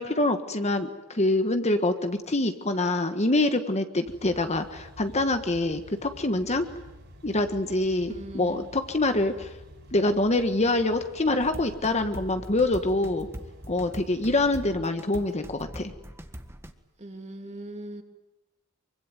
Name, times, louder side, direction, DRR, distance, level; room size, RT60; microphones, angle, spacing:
voice 1, 0.0-6.7 7.2-9.5 9.9-13.3 13.7-15.9, left 2 dB, 30° left, 7 dB, 1.5 m, -25 dB
sound 1, 4.0-14.8, equal, 55° right, 6.5 m, -49 dB
voice 2, 8.1-8.7 17.0-18.0, right 1 dB, 30° right, 4 dB, 3.0 m, -40 dB
sound 2, 11.4-16.7, equal, 10° right, 1.6 m, -42 dB
25.0 x 24.5 x 9.3 m, 0.99 s
head